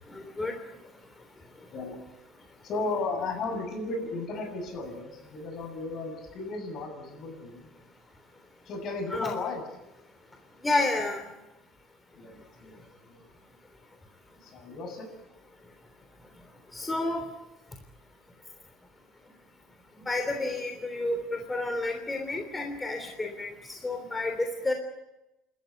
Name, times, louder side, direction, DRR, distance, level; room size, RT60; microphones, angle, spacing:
voice 1, 0.1-0.6 9.1-9.3 10.6-11.2 16.7-17.2 20.0-24.7, left 2 dB, 15° left, 4 dB, 3.3 m, -30 dB
voice 2, 2.6-7.7 8.7-9.6 12.2-12.8 13.1-13.2 14.4-15.1 20.3-20.4, left 3 dB, 50° left, 5 dB, 7.5 m, -35 dB
28.0 x 13.5 x 9.7 m, 0.97 s
supercardioid pair, 100°, 0 cm